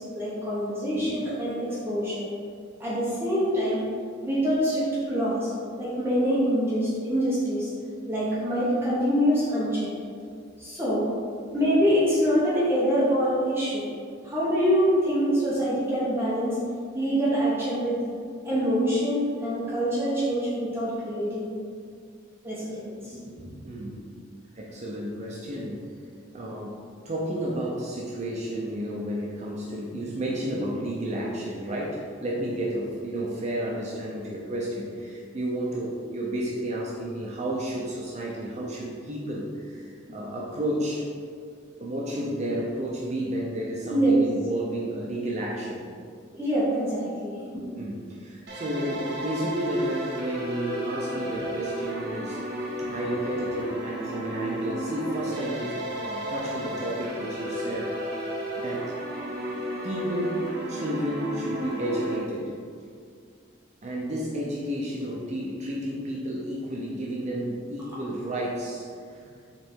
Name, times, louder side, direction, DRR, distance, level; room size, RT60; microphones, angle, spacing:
voice 1, 0.0-2.3 2.8-3.8 4.2-5.5 5.8-7.7 8.1-9.9 10.6-11.1 11.5-13.8 14.2-16.6 16.9-18.0 18.4-21.5 22.4-23.5 43.9-44.2 46.3-47.6 52.8-52.9, equal, 10° right, -9 dB, 1.1 m, -25 dB
voice 2, 23.6-24.1 24.5-25.8 26.3-26.8 27.0-41.1 41.8-45.8 47.8-52.4 52.8-57.9 58.6-59.0 59.8-62.5 63.8-69.2, right 1 dB, 35° right, -3 dB, 0.6 m, -31 dB
sound 1, 48.5-62.2, right 1 dB, 50° right, 1.1 m, -33 dB
5.4 x 4.0 x 4.5 m, 2.2 s
head